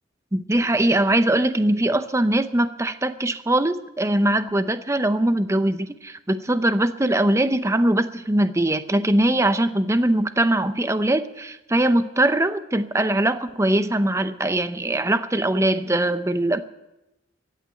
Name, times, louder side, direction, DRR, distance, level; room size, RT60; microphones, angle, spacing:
voice 1, 0.3-16.6, right 1 dB, 15° right, 11 dB, 0.7 m, -21 dB
15.5 x 9.2 x 8.9 m, 0.95 s
head